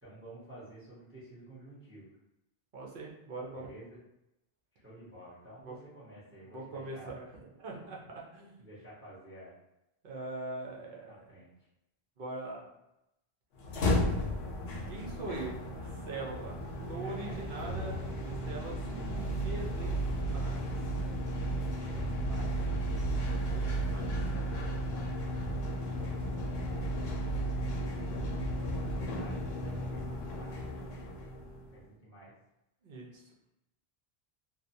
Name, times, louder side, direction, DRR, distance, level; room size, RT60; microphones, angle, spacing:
voice 1, 0.0-2.1 3.5-4.0 4.7-7.1 8.6-9.6 11.1-11.7 16.9-17.4 21.7-22.7 24.1-24.9 28.7-30.7 31.7-32.3, right 1 dB, 15° right, -10 dB, 0.9 m, -51 dB
voice 2, 2.7-3.7 5.6-5.8 6.4-7.3 7.6-8.6 10.0-11.3 12.2-12.7 14.9-16.6 16.9-18.8 19.2-20.7 23.5-24.3 32.8-33.2, right 2 dB, 60° right, -2 dB, 0.8 m, -42 dB
sound 1, 13.6-31.7, equal, 80° left, 0.8 m, -34 dB
2.7 x 2.1 x 2.6 m, 0.88 s
omnidirectional pair, 1.0 m